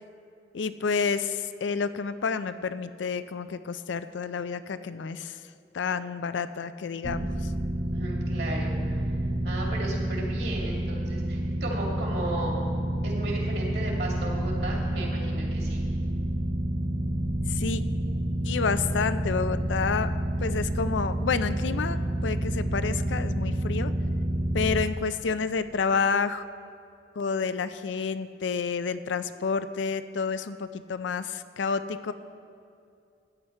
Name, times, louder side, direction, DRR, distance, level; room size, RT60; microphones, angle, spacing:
voice 1, 0.5-5.4 5.7-7.5 17.5-17.8 18.4-20.1 20.4-23.9 24.5-26.4 27.2-32.1, left 5 dB, 75° left, 12 dB, 0.4 m, -29 dB
sound 1, 7.0-24.9, right 1 dB, 15° right, 0.5 m, -29 dB
voice 2, 7.9-9.1 9.4-12.5 13.0-15.8, right 2 dB, 60° right, -2 dB, 2.3 m, -35 dB
14.0 x 9.5 x 4.4 m, 2.4 s
head